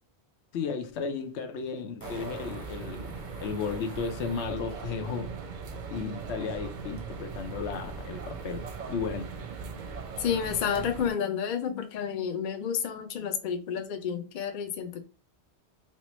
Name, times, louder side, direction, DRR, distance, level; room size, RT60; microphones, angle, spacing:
voice 1, 0.5-5.4 5.9-9.3, left 5 dB, 85° left, 0.9 m, -34 dB
Fart, 0.9-1.0 2.0-4.5 7.0-7.1, left 2 dB, 15° left, 0.9 m, -49 dB
sound 1, 2.0-11.1, right 5 dB, 55° right, 0.6 m, -39 dB
voice 2, 10.2-15.0, left 8 dB, 55° left, 0.6 m, -30 dB
4.3 x 2.1 x 3.0 m
omnidirectional pair, 1.1 m